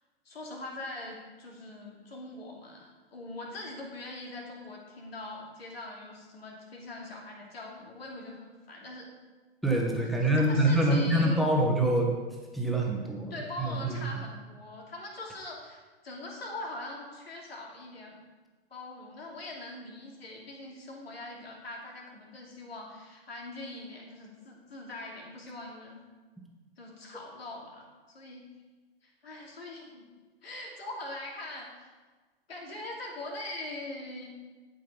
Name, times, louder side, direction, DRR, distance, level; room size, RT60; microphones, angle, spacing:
voice 1, 0.2-9.1 10.1-11.5 13.3-18.2 18.7-26.0 26.8-28.4 29.0-30.0 30.4-31.7 32.5-34.3, left 2 dB, 70° left, -1 dB, 2.8 m, -42 dB
voice 2, 9.6-12.1 12.5-13.3 13.6-14.0, right 1 dB, ahead, 0 dB, 1.5 m, -25 dB
11.5 x 5.5 x 5.4 m, 1.3 s
figure-of-eight pair, 110°, 32 cm